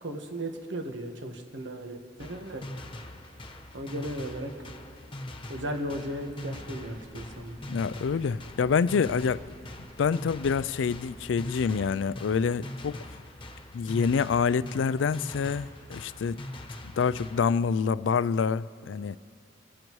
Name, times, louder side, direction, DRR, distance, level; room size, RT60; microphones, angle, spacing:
voice 1, 0.0-2.7 3.7-4.7 5.5-7.6, right 1 dB, 80° right, 4 dB, 1.4 m, -36 dB
sound 1, 2.2-17.5, left 1 dB, 30° left, 1.1 m, -43 dB
sound 2, 6.3-11.9, equal, 35° right, 1.7 m, -51 dB
voice 2, 7.7-9.4 10.0-13.0 13.7-16.4 17.0-19.2, left 6 dB, 75° left, 17 dB, 0.4 m, -26 dB
28.5 x 15.0 x 3.1 m, 2.4 s
head